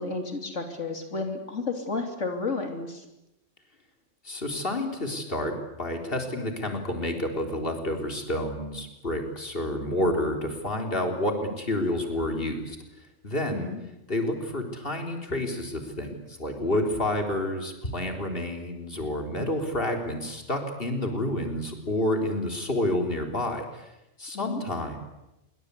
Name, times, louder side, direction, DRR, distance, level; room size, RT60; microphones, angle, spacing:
voice 1, 0.0-3.1 13.5-13.8 24.3-24.6, left 3 dB, 90° left, 4 dB, 3.3 m, -32 dB
voice 2, 4.2-12.8 13.2-13.7 14.1-23.9 24.2-25.0, left 1 dB, 50° left, 3 dB, 4.0 m, -29 dB
27.5 x 23.5 x 8.3 m, 0.91 s
omnidirectional pair, 1.2 m